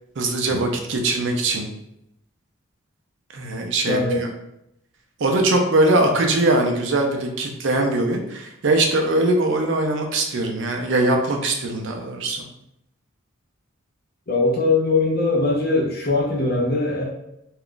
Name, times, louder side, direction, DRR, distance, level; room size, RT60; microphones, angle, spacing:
voice 1, 0.2-1.7 3.3-4.3 5.2-12.5, right 2 dB, 55° right, 3 dB, 0.4 m, -21 dB
voice 2, 3.9-4.2 14.3-17.0, left 3 dB, 45° left, -2 dB, 0.7 m, -21 dB
2.4 x 2.3 x 3.6 m, 0.81 s
head